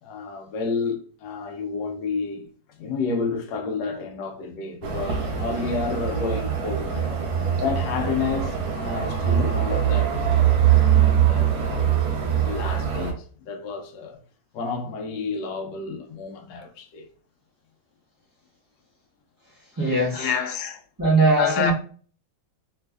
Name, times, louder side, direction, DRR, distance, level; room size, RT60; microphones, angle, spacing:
voice 1, 0.0-7.2 7.6-11.9 12.4-14.2 14.5-17.1 19.8-20.8 21.4-21.7, left 4 dB, 75° left, 1.2 m, -30 dB
sound 1, 4.8-13.1, right 9 dB, 65° right, 1.1 m, -22 dB
voice 2, 19.8-20.3 21.0-21.7, right 2 dB, 15° right, 1.0 m, -20 dB
3.3 x 3.1 x 2.3 m
omnidirectional pair, 2.1 m